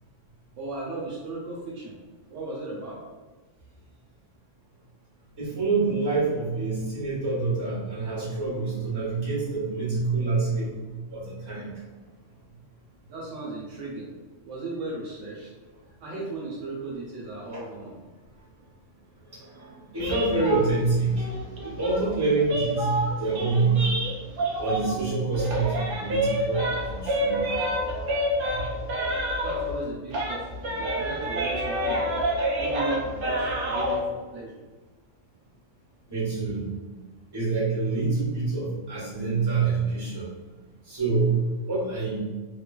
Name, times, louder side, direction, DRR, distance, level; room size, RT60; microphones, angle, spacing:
voice 1, 0.6-2.0 2.3-3.0 13.1-14.1 14.5-15.5 16.0-17.9 29.4-32.2 32.6-34.5, right 2 dB, 75° right, -4 dB, 1.0 m, -36 dB
voice 2, 5.3-10.8 11.1-11.7 17.5-17.6 19.3-21.3 21.6-23.9 24.6-27.4 28.5-28.6 36.1-36.8 37.3-40.3 40.8-42.2, right 3 dB, 20° right, -8 dB, 1.2 m, -26 dB
sound 1, 20.0-25.1 25.3-29.8 30.1-34.0, right 1 dB, 55° right, 0.7 m, -28 dB
2.9 x 2.3 x 2.2 m, 1.3 s
omnidirectional pair, 1.3 m